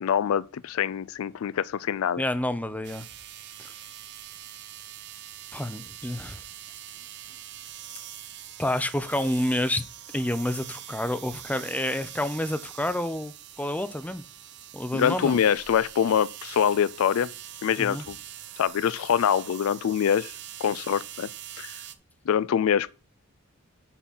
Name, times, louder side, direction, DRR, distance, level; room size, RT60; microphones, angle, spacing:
voice 1, 0.0-2.2 14.9-17.3 17.6-18.2 18.6-20.3 20.6-21.3 21.6-21.7 22.3-22.9, left 8 dB, 75° left, 0.4 m, -24 dB
voice 2, 2.2-3.1 3.6-3.7 5.5-6.4 8.6-9.8 10.1-14.2 14.7-15.4 17.8-18.0, left 1 dB, 5° left, 0.6 m, -29 dB
sound 1, 2.8-21.9, right 12 dB, 55° right, 0.7 m, -43 dB
8.2 x 3.9 x 5.9 m
head